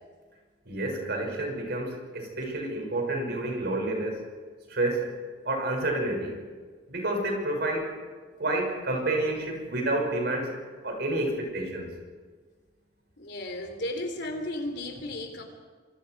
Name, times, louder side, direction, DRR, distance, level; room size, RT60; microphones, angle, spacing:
voice 1, 0.7-4.2 4.7-5.1 5.4-6.4 6.9-7.9 8.4-10.5 10.8-11.9, right 2 dB, 60° right, 1 dB, 6.5 m, -29 dB
voice 2, 13.2-15.4, left 1 dB, 60° left, 5 dB, 3.5 m, -34 dB
27.0 x 26.0 x 4.9 m, 1.5 s
head